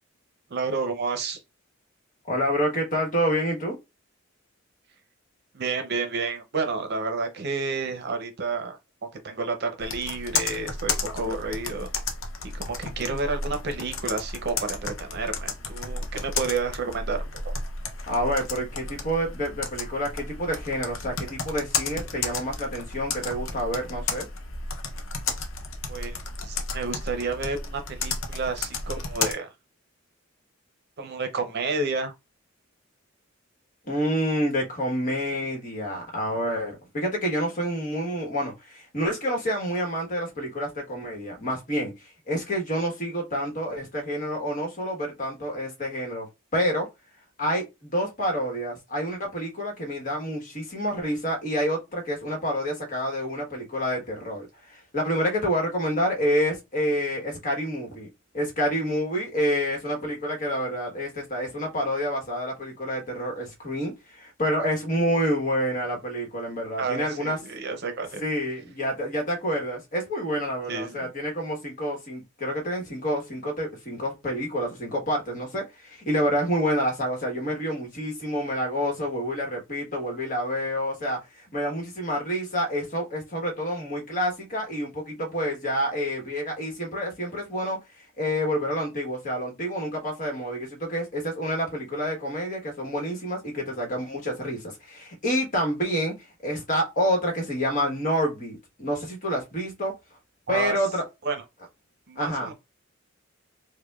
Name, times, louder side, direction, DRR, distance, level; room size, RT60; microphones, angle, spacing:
voice 1, 0.5-1.4 5.5-8.8 9.2-11.9 12.4-17.5 25.9-29.5 31.0-32.1 66.8-68.2 70.7-70.9 100.5-100.8 101.2-101.4 102.1-102.5, right 4 dB, 55° right, 0.6 m, -30 dB
voice 2, 2.3-3.8 18.1-24.3 33.9-41.9 42.3-46.3 46.5-46.9 47.4-58.1 58.3-67.4 68.2-87.8 88.2-96.1 96.4-99.9 100.5-101.0 102.1-102.5, equal, 40° left, 1.2 m, -28 dB
Computer keyboard, 9.8-29.3, left 4 dB, 70° left, 0.6 m, -33 dB
4.8 x 2.2 x 2.3 m
head